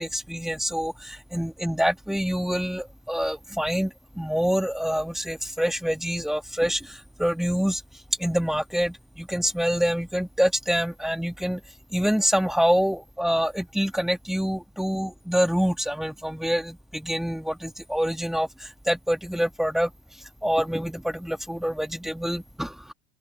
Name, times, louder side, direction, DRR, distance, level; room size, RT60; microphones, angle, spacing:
voice 1, 0.0-7.8 8.2-11.6 11.9-19.9 20.4-22.7, equal, ahead, 1.6 m, -26 dB
open air
hypercardioid pair, 95°, 38 cm